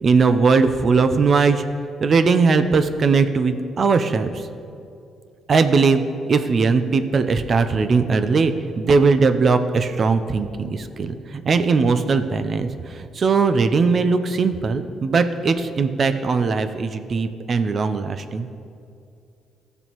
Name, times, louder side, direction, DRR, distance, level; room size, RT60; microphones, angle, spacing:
voice 1, 0.0-1.6 2.0-4.4 5.5-18.5, right 4 dB, 45° right, 9 dB, 0.5 m, -19 dB
14.0 x 6.7 x 3.0 m, 2.5 s
cardioid pair, 90°, 0 cm